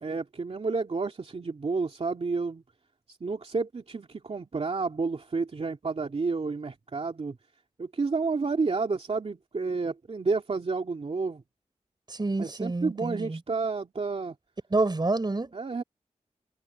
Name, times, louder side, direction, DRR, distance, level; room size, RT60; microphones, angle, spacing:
voice 1, 0.0-2.6 3.1-7.4 7.8-11.4 12.4-14.4 15.5-15.8, right 4 dB, 55° right, 2.5 m, -30 dB
voice 2, 12.1-13.4 14.7-15.5, right 2 dB, 35° right, 4.5 m, -28 dB
wide cardioid pair, 75°, 12 cm